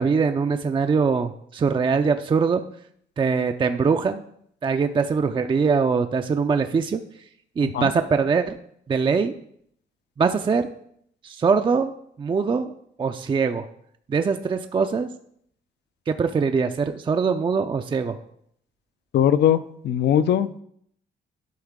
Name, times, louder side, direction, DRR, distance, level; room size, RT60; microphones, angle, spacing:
voice 1, 0.0-2.6 3.2-4.2 4.6-7.0 7.6-8.5 8.9-9.3 10.2-10.7 11.2-11.9 12.2-12.7 13.0-13.7 14.1-15.1 16.1-18.2, right 5 dB, 25° right, 7 dB, 0.4 m, -22 dB
voice 2, 19.1-20.6, left 10 dB, 60° left, 14 dB, 0.5 m, -20 dB
11.5 x 3.8 x 3.6 m, 0.68 s
cardioid pair, 90°, 20 cm